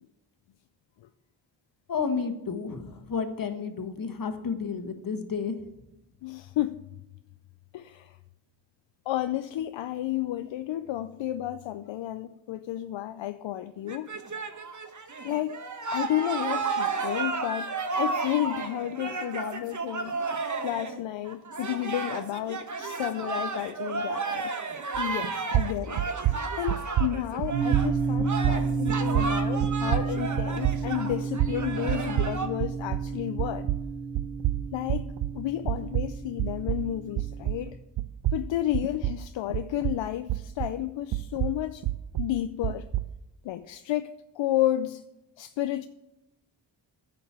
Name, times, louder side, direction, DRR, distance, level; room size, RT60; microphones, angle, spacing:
voice 1, 1.9-5.6, left 5 dB, 45° left, 1.4 m, -31 dB
voice 2, 6.2-6.8 7.7-8.1 9.1-14.1 15.2-15.6 15.9-20.2 20.6-24.5 25.0-26.0 26.5-33.7 34.7-37.8 38.3-41.8 42.2-42.9 43.4-44.1 44.4-45.0 45.4-45.9, left 13 dB, 75° left, 0.5 m, -31 dB
sound 1, 13.9-27.9 28.2-32.5, right 4 dB, 40° right, 1.2 m, -33 dB
sound 2, 24.9-25.3 25.5-33.1 33.4-37.7 38.0-40.8 41.1-43.2, right 14 dB, 65° right, 0.6 m, -29 dB
sound 3, 27.5-37.7, right 4 dB, 80° right, 1.9 m, -31 dB
10.0 x 5.2 x 7.3 m
cardioid pair, 55°, 45 cm